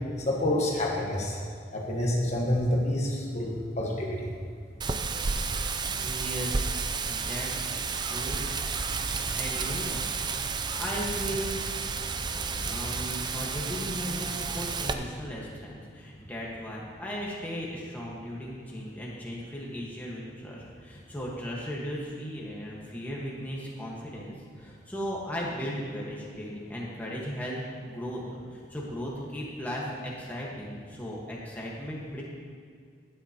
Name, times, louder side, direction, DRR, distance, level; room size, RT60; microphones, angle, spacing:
voice 1, 0.3-1.4 1.7-4.3 5.5-5.6, left 1 dB, 40° left, -2 dB, 1.2 m, -28 dB
Wind, 4.8-14.9, right 4 dB, 25° right, 0.4 m, -31 dB
voice 2, 6.0-7.8 8.0-8.5 9.0-10.4 10.7-11.6 12.0-12.2 12.6-27.6 27.8-28.2 28.5-32.2, equal, 10° left, -5 dB, 1.4 m, -37 dB
12.0 x 9.2 x 2.9 m, 2.2 s
head